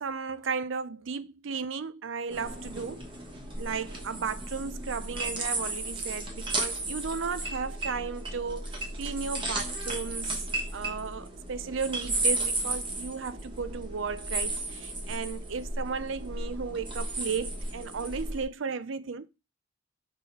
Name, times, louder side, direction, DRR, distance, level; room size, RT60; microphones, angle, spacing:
voice 1, 0.0-3.0 3.6-10.4 10.7-19.3, right 5 dB, 65° right, 0.5 m, -35 dB
sound 1, 2.3-18.4, right 2 dB, 25° right, 1.3 m, -34 dB
5.0 x 3.7 x 5.3 m
head